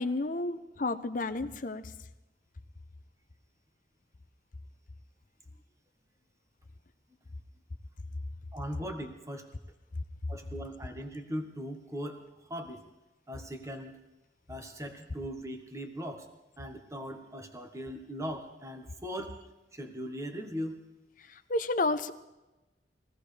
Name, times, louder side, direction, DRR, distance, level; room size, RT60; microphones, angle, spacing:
voice 1, 0.0-1.8 21.3-22.1, left 2 dB, 45° left, 11 dB, 0.7 m, -31 dB
voice 2, 8.5-9.5 10.3-12.2 12.5-12.8 13.3-14.0 14.5-16.3 16.6-19.4 19.7-20.8, equal, 15° right, 4 dB, 1.2 m, -39 dB
22.0 x 16.5 x 3.4 m, 1.0 s
head